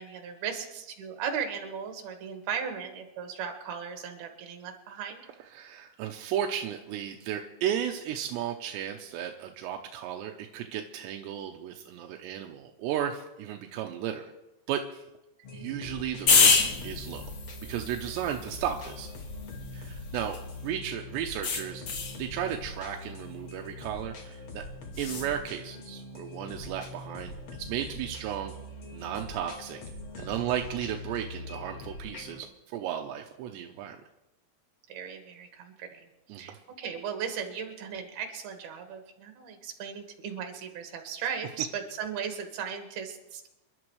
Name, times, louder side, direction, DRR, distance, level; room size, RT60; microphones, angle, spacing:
voice 1, 0.0-5.2 34.9-36.0 36.3-43.5, right 7 dB, 65° right, 4 dB, 3.6 m, -37 dB
voice 2, 5.5-14.3 14.7-15.0 15.5-17.3 17.7-19.1 19.7-21.8 22.2-24.7 25.0-28.5 28.9-29.8 30.2-34.0 36.3-36.6, right 10 dB, 85° right, 3 dB, 3.0 m, -34 dB
sound 1, 15.4-32.4, left 1 dB, 85° left, 1.1 m, -43 dB
sound 2, 16.3-20.7 21.4-22.2 24.9-25.3, left 5 dB, 55° left, 1.7 m, -28 dB
28.5 x 11.5 x 3.2 m, 0.93 s
omnidirectional pair, 5.0 m